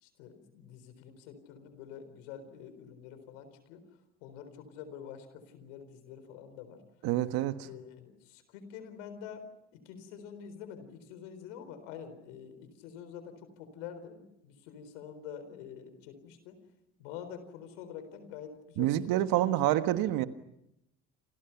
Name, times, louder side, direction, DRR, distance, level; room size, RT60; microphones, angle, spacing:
voice 1, 0.0-3.8 4.2-6.8 7.6-16.6 17.0-19.8, left 8 dB, 90° left, 11 dB, 4.2 m, -47 dB
voice 2, 7.0-7.7 18.8-20.3, right 14 dB, 75° right, 10 dB, 1.5 m, -27 dB
28.5 x 27.5 x 5.9 m, 0.83 s
supercardioid pair, 70°, 35 cm